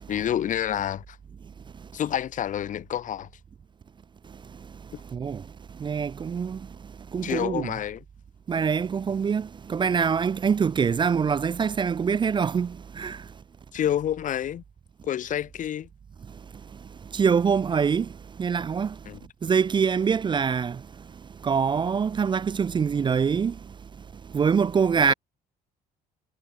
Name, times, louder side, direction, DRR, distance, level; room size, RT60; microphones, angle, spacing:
voice 1, 0.1-1.2 1.9-3.3 4.9-5.0 7.2-8.0 13.7-14.6 15.0-15.9 19.1-19.2, left 10 dB, 50° left, 0.8 m, -28 dB
voice 2, 5.1-5.4 5.8-6.6 7.1-7.7 8.5-13.2 17.1-18.1 18.4-18.9 19.4-20.8 21.4-23.5 24.3-25.1, right 6 dB, 30° right, 0.5 m, -24 dB
cardioid pair, 110°, 17 cm